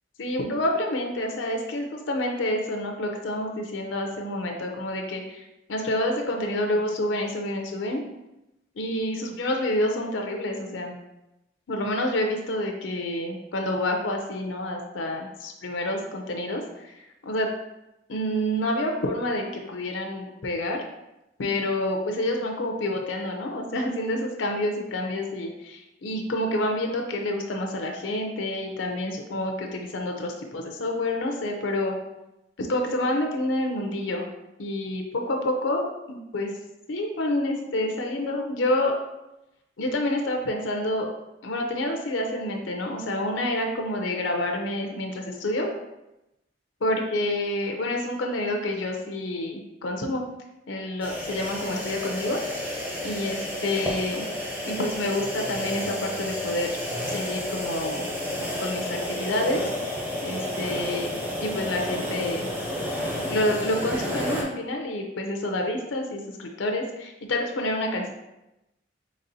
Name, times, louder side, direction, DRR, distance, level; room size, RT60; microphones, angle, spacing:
voice 1, 0.2-5.4 5.7-8.0 8.8-10.9 11.7-16.9 17.2-17.5 18.1-20.8 21.4-32.0 32.6-34.2 34.6-36.5 36.9-38.9 39.8-41.1 41.4-45.7 46.8-50.2 50.7-52.7 53.0-54.3 54.6-56.7 57.1-58.0 58.6-59.6 60.2-62.5 63.1-68.1, left 1 dB, 90° left, 2 dB, 0.6 m, -28 dB
sound 1, 51.0-64.4, left 1 dB, 10° right, 0.6 m, -31 dB
4.1 x 3.6 x 2.6 m, 0.92 s
head